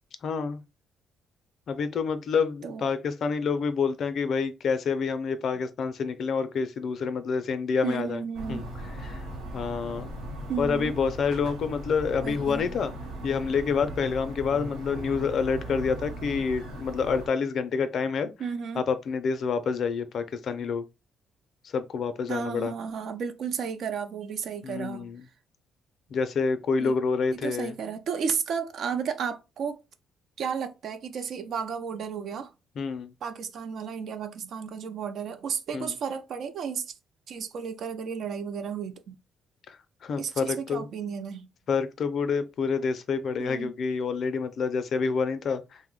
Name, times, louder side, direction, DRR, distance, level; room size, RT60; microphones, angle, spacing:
voice 1, 0.2-0.6 1.7-8.2 8.5-8.6 9.0-9.2 9.5-10.1 10.6-12.9 13.2-18.3 18.8-20.8 21.6-22.7 24.6-25.2 26.1-27.7 32.8-33.1 35.7-35.9 39.7-40.9 41.7-45.8, left 5 dB, 60° left, 0.4 m, -28 dB
voice 2, 7.8-8.9 10.5-10.9 12.2-12.7 18.4-18.8 22.3-25.1 26.8-26.9 27.3-29.8 30.4-32.5 33.2-36.9 37.3-39.2 40.2-41.5 43.4-43.7, right 6 dB, 65° right, 0.4 m, -33 dB
sound 1, 8.3-17.3, right 1 dB, 85° right, 1.1 m, -38 dB
2.6 x 2.1 x 3.7 m
supercardioid pair, 60°, 0 cm